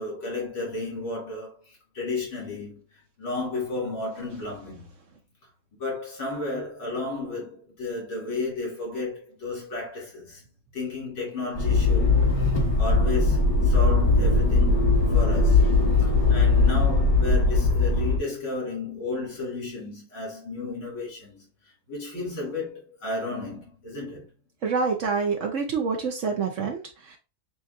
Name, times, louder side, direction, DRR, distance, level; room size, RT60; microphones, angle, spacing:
voice 1, 0.0-4.9 5.8-10.4 10.7-24.3, left 3 dB, 80° left, 3.6 m, -33 dB
Motor vehicle (road), 11.5-18.2, left 3 dB, 30° left, 0.4 m, -20 dB
voice 2, 24.6-26.8 27.1-27.2, right 5 dB, 70° right, 0.7 m, -26 dB
6.7 x 2.4 x 2.6 m
omnidirectional pair, 2.2 m